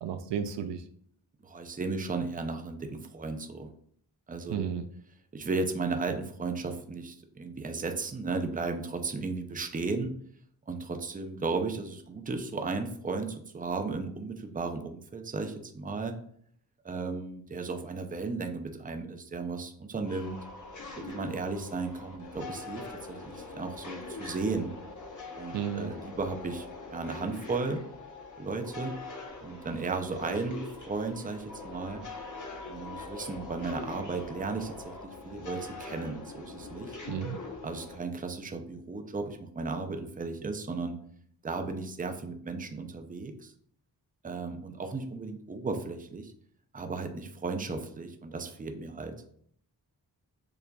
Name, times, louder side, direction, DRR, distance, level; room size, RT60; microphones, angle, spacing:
voice 1, 0.0-0.8 4.5-4.9 25.5-25.9 37.1-37.4, right 8 dB, 75° right, 9 dB, 0.5 m, -33 dB
voice 2, 1.4-3.7 4.3-4.6 5.3-10.1 10.7-16.2 16.8-20.4 21.0-24.7 25.4-27.8 28.4-28.9 29.4-32.0 32.6-34.9 35.2-36.9 37.6-41.0 41.4-43.5 44.2-46.3 46.7-49.1, right 3 dB, 20° right, 5 dB, 0.6 m, -35 dB
sound 1, 20.0-38.0, left 3 dB, 45° left, 1.1 m, -43 dB
6.8 x 2.5 x 2.3 m, 0.63 s
cardioid pair, 60°, 42 cm